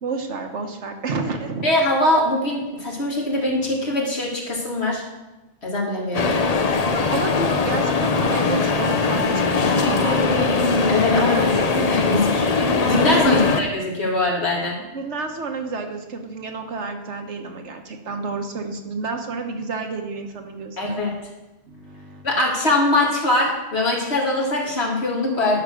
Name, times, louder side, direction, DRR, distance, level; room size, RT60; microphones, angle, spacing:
voice 1, 0.0-1.6 7.1-10.5 11.2-11.7 13.2-13.6 14.8-21.0 21.7-22.3, right 4 dB, 70° right, 4 dB, 1.4 m, -30 dB
voice 2, 1.6-5.0 5.6-6.3 10.9-11.4 11.7-12.5 12.8-14.8 20.8-21.2 22.2-25.6, left 2 dB, 60° left, -2 dB, 2.4 m, -22 dB
sound 1, 6.1-13.6, left 4 dB, 40° left, 0.7 m, -20 dB
10.5 x 5.9 x 6.3 m, 1.0 s
omnidirectional pair, 1.2 m